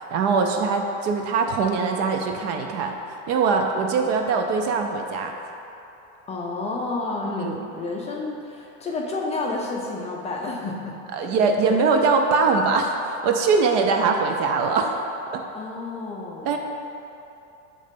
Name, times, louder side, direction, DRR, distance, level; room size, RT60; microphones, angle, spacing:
voice 1, 0.1-3.0 3.3-5.3 7.2-7.6 11.1-15.0 15.3-15.4 16.4-16.6, right 4 dB, 45° right, 4 dB, 0.5 m, -22 dB
voice 2, 6.3-10.9 11.2-11.3 11.6-11.8 15.5-16.5, left 3 dB, 20° left, -2 dB, 0.5 m, -30 dB
7.6 x 3.2 x 5.2 m, 2.9 s
supercardioid pair, 150°, 36 cm